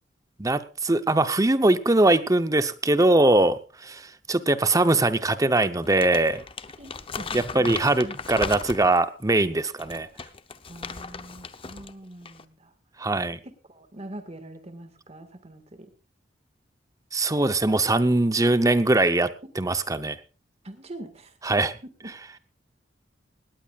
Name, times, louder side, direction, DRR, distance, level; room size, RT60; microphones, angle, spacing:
voice 1, 0.4-6.4 7.3-10.1 13.0-13.4 17.1-20.2 21.4-21.7, right 2 dB, 20° right, 12 dB, 0.8 m, -22 dB
Crumpling crinkling, 5.8-9.1 9.7-11.9 12.2-12.4, left 5 dB, 30° left, 0.8 m, -37 dB
voice 2, 6.8-8.1 10.7-12.7 13.4-15.9 20.6-21.4 22.0-22.4, right 1 dB, 35° right, 8 dB, 1.8 m, -43 dB
19.0 x 18.0 x 2.4 m, 0.34 s
head